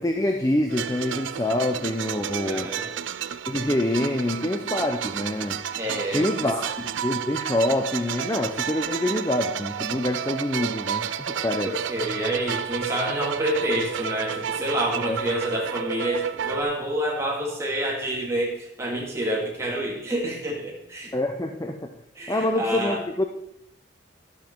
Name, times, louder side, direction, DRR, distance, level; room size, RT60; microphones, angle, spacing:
voice 1, 0.0-2.8 3.5-5.6 6.1-11.8 15.0-15.2 21.1-21.9 22.3-23.3, left 1 dB, 15° left, 4 dB, 0.5 m, -26 dB
sound 1, 0.7-16.6, right 8 dB, 70° right, 0.4 m, -31 dB
voice 2, 2.4-2.9 5.8-6.5 11.6-21.1 22.2-23.0, right 1 dB, 15° right, -3 dB, 2.2 m, -28 dB
11.5 x 7.2 x 4.5 m, 0.77 s
head